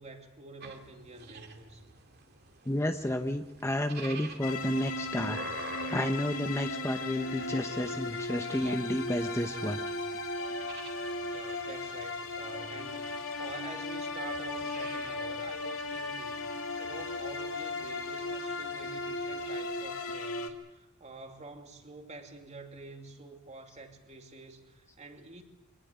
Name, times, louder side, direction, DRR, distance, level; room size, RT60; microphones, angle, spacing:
voice 1, 0.0-1.8 11.2-16.5 16.8-25.4, right 2 dB, 30° right, 4 dB, 2.7 m, -48 dB
sound 1, 0.6-19.6, right 4 dB, 50° right, 2.4 m, -50 dB
voice 2, 2.7-10.2, left 1 dB, 15° left, 6 dB, 0.9 m, -32 dB
sound 2, 4.4-20.5, left 2 dB, 65° left, 2.4 m, -36 dB
23.5 x 19.0 x 8.1 m, 0.96 s
head